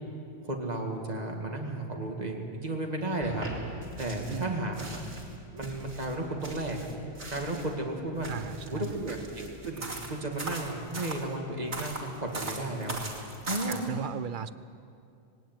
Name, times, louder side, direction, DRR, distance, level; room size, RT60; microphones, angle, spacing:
voice 1, 0.4-3.5 4.0-5.0 5.5-6.9 7.3-8.3 8.7-13.0 13.5-13.8, right 1 dB, 35° right, 1 dB, 2.6 m, -33 dB
sound 1, 3.2-4.5 4.7-7.7 8.2-11.2 11.7-13.8, right 2 dB, 70° right, 3.0 m, -40 dB
voice 2, 8.3-9.0 13.7-14.5, right 7 dB, 50° right, 14 dB, 0.8 m, -36 dB
19.5 x 18.0 x 9.4 m, 2.5 s
omnidirectional pair, 1.2 m